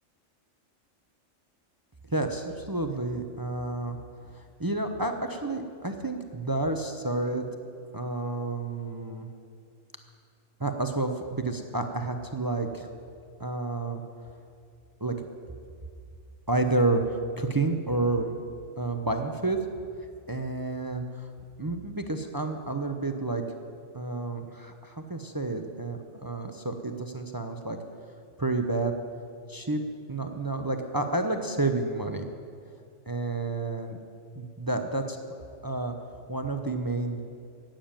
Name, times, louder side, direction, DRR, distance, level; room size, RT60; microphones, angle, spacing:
voice 1, 2.1-4.0 4.3-7.5 7.9-9.3 10.6-12.9 13.4-14.0 15.0-15.2 16.5-18.3 18.8-19.6 20.3-21.3 21.6-23.4 23.9-27.8 28.4-29.0 29.5-29.8 30.1-32.3 33.1-34.0 34.3-35.2 35.6-35.9 36.3-37.2, right 2 dB, 20° right, 5 dB, 0.6 m, -30 dB
12.5 x 9.0 x 8.9 m, 2.3 s
omnidirectional pair, 1.4 m